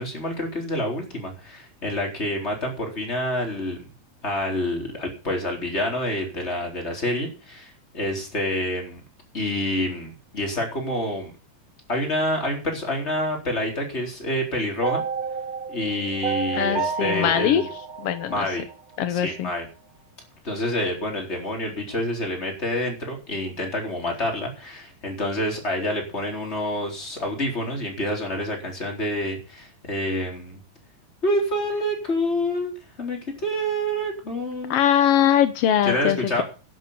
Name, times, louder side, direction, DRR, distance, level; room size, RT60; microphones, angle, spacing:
voice 1, 0.0-3.8 4.2-9.0 9.3-11.3 11.9-15.0 15.7-17.7 18.3-18.6 19.1-19.7 20.4-30.6 31.2-34.8 35.9-36.4, left 1 dB, 20° left, 1 dB, 4.1 m, -27 dB
sound 1, 14.8-19.0, right 5 dB, 50° right, 1.0 m, -30 dB
voice 2, 16.5-17.6 18.0-18.5 19.0-19.5 34.7-36.4, left 10 dB, 80° left, 11 dB, 1.3 m, -21 dB
11.5 x 8.2 x 8.4 m, 0.35 s
omnidirectional pair, 3.9 m